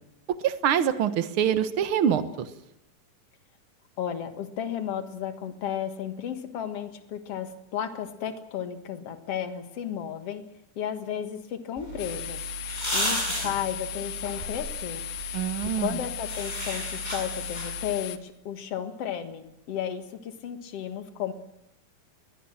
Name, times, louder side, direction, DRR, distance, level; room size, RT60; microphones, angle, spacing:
voice 1, 0.4-2.5 15.3-16.0, right 9 dB, 65° right, 11 dB, 1.3 m, -25 dB
voice 2, 4.0-10.5 10.8-12.4 12.9-15.1 15.7-21.3, left 9 dB, 50° left, 8 dB, 2.3 m, -33 dB
sound 1, 11.8-17.9, equal, 10° left, 7.1 m, -34 dB
sound 2, 12.0-18.2, left 12 dB, 75° left, 2.8 m, -37 dB
22.0 x 19.5 x 7.3 m, 0.83 s
omnidirectional pair, 4.0 m